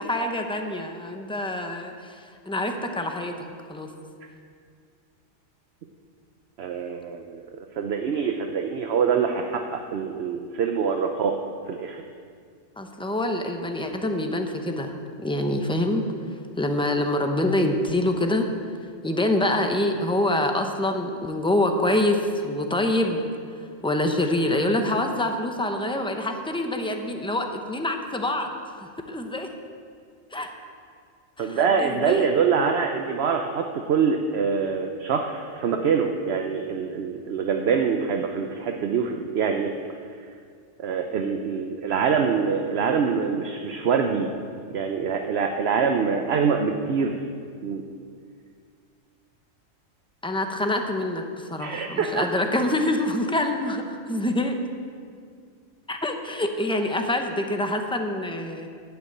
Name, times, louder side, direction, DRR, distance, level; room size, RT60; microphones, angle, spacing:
voice 1, 0.0-2.2 2.5-3.9 12.8-14.9 15.2-16.0 16.6-18.5 19.0-23.2 23.8-29.5 30.3-30.5 31.4-32.3 50.2-54.6 55.9-58.7, left 1 dB, 5° left, 4 dB, 0.6 m, -26 dB
voice 2, 6.6-7.4 7.8-11.4 11.7-12.0 31.4-39.7 40.8-44.3 44.7-47.2 47.6-47.8 51.6-52.3, right 6 dB, 60° right, 4 dB, 0.9 m, -25 dB
12.0 x 6.0 x 8.6 m, 2.2 s
omnidirectional pair, 1.3 m